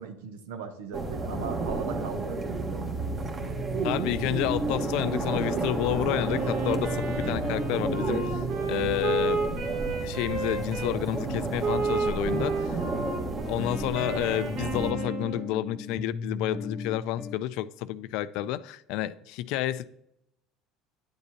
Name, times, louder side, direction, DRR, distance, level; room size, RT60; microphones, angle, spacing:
voice 1, 0.0-2.4, right 6 dB, 85° right, 0.6 m, -38 dB
sound 1, 0.9-14.9, right 3 dB, 35° right, 1.3 m, -31 dB
voice 2, 3.8-8.2 8.7-9.5 10.0-12.8 13.4-19.8, left 14 dB, 70° left, 0.3 m, -30 dB
Wind instrument woodwind instrument, 6.2-10.9 11.6-15.5, right 4 dB, 60° right, 1.6 m, -32 dB
sound 2, 9.4-9.5 9.9-10.0 10.6-17.4, left 3 dB, 20° left, 0.6 m, -38 dB
9.7 x 6.8 x 2.8 m
supercardioid pair, 85°, 0 cm